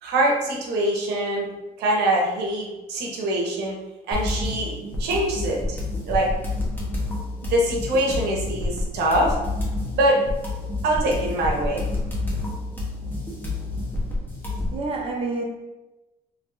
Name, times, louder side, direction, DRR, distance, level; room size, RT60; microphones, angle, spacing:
voice 1, 0.0-1.5 1.8-3.8 4.1-4.7 5.0-5.8 6.0-6.3 7.4-9.4 9.9-10.2 10.8-11.8 12.3-12.4, right 1 dB, 80° right, -1 dB, 0.8 m, -23 dB
sound 1, 4.1-14.8, left 2 dB, 10° left, 1.0 m, -29 dB
voice 2, 13.7-15.4, right 3 dB, 35° right, 0 dB, 0.6 m, -31 dB
3.4 x 2.9 x 2.6 m, 1.0 s
cardioid pair, 110°, 17 cm